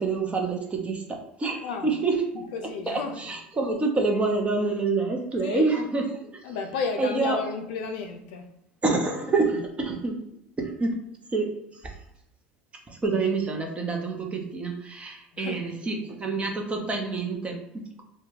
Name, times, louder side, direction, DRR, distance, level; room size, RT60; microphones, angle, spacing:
voice 1, 0.0-2.5 2.9-6.4 7.0-7.4 8.8-10.2 10.6-11.0 11.3-11.5 12.9-18.0, right 3 dB, 20° right, 0.6 m, -27 dB
voice 2, 2.5-3.2 5.4-5.8 6.4-8.5 15.3-16.0, left 5 dB, 70° left, 0.4 m, -33 dB
2.2 x 2.1 x 3.1 m
hypercardioid pair, 80°, 5 cm